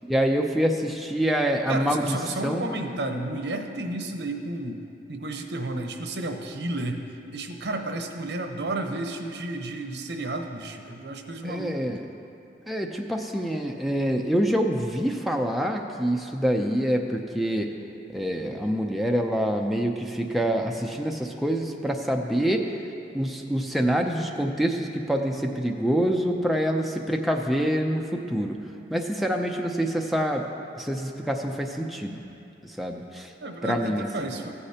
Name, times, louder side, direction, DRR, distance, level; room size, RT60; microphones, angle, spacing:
voice 1, 0.0-2.2 2.4-2.7 11.4-12.0 12.7-17.7 18.1-22.6 23.1-28.6 28.9-30.5 30.8-32.2 32.6-33.3 33.6-34.3, equal, ahead, 1 dB, 0.4 m, -26 dB
voice 2, 1.7-4.8 5.1-7.0 7.3-12.0 33.4-34.5, right 2 dB, 80° right, 4 dB, 0.8 m, -32 dB
15.0 x 9.8 x 2.8 m, 2.7 s
head